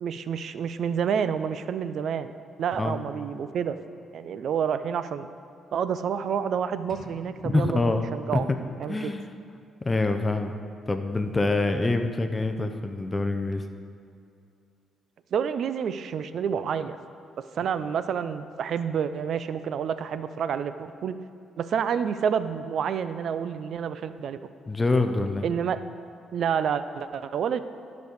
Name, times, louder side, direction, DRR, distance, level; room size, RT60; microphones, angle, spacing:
voice 1, 0.0-2.3 2.6-3.8 4.1-5.3 5.7-8.5 8.8-9.1 15.3-17.0 17.5-21.2 21.6-24.4 25.4-25.8 26.3-27.6, right 7 dB, 65° right, 12 dB, 0.4 m, -28 dB
sound 1, 6.9-8.9, right 1 dB, 40° right, 2.3 m, -50 dB
voice 2, 7.4-8.1 8.3-8.4 8.9-9.3 9.8-10.6 10.9-13.6 24.7-25.4, left 2 dB, 20° left, 6 dB, 0.6 m, -25 dB
10.5 x 5.2 x 6.4 m, 2.4 s
cardioid pair, 90°, 0 cm